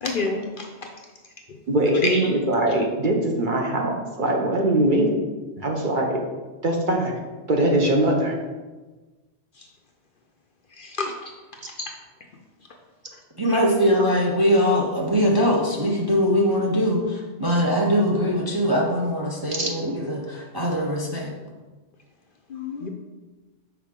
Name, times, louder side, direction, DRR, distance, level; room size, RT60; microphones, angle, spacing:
voice 1, 0.0-0.7 2.0-2.3 10.8-11.1 22.5-22.9, left 3 dB, 55° left, 3 dB, 0.6 m, -27 dB
voice 2, 1.7-5.1 5.6-6.2 6.6-7.1 7.5-8.4 19.6-19.7, right 1 dB, 50° right, 1 dB, 0.9 m, -22 dB
voice 3, 13.4-21.3, equal, 25° right, -2 dB, 0.5 m, -22 dB
5.9 x 4.4 x 3.6 m, 1.2 s
omnidirectional pair, 1.2 m